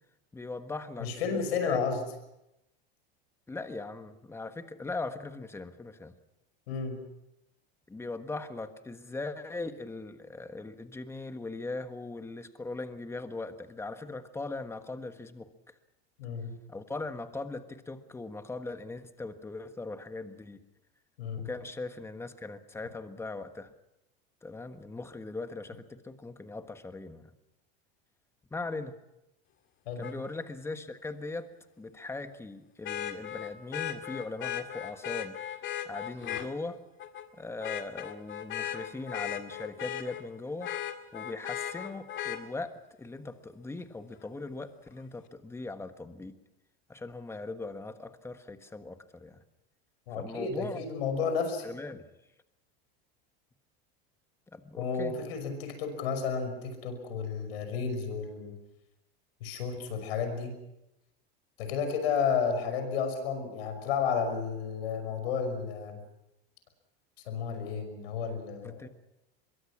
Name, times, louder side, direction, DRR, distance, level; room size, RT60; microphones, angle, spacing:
voice 1, 0.3-1.8 3.5-6.1 7.9-15.7 16.7-20.6 21.4-23.7 24.4-27.3 28.5-28.9 30.0-31.5 31.8-35.4 35.8-36.8 37.3-40.7 41.1-46.3 46.9-49.4 50.1-50.8 51.6-52.1 54.5-55.2 68.6-68.9, left 3 dB, 10° left, 9 dB, 1.4 m, -40 dB
voice 2, 1.0-2.0 6.7-7.1 16.2-16.5 21.2-21.5 29.9-30.1 50.1-51.6 54.8-58.6 59.4-60.6 61.6-66.0 67.3-68.9, left 6 dB, 90° left, 8 dB, 5.8 m, -32 dB
Vehicle horn car horn honking, 30.0-30.1 32.8-36.5 37.0-37.3 37.6-40.2 40.6-42.4 44.2-44.3, left 10 dB, 40° left, 2.1 m, -36 dB
24.0 x 22.5 x 6.1 m, 0.89 s
supercardioid pair, 130°, 29 cm